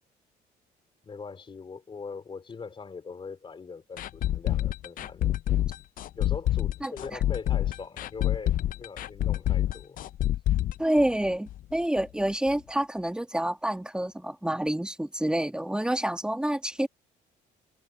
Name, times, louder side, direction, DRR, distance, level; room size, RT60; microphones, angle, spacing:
voice 1, 1.0-5.7 6.1-10.0, left 5 dB, 30° left, 4.3 m, -41 dB
sound 1, 4.0-11.7 12.0-12.1 12.5-12.6, left 13 dB, 55° left, 0.5 m, -27 dB
voice 2, 10.8-16.9, right 1 dB, 5° right, 2.1 m, -28 dB
cardioid pair, 110°, 17 cm